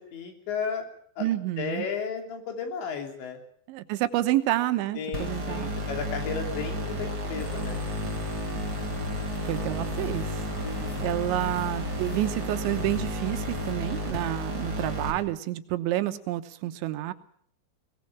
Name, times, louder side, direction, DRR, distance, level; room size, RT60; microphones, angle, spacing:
voice 1, 0.1-0.9 1.2-1.3 1.6-3.4 5.0-7.8 10.6-11.6, left 6 dB, 75° left, 4 dB, 5.4 m, -34 dB
voice 2, 1.2-1.9 3.7-5.8 9.5-10.5 11.0-17.1, right 15 dB, 85° right, 10 dB, 3.4 m, -29 dB
sound 1, 5.1-15.1, equal, 20° right, 4.9 m, -32 dB
sound 2, 7.4-13.7, left 5 dB, 40° left, 1.5 m, -42 dB
21.5 x 19.0 x 7.3 m, 0.62 s
omnidirectional pair, 5.2 m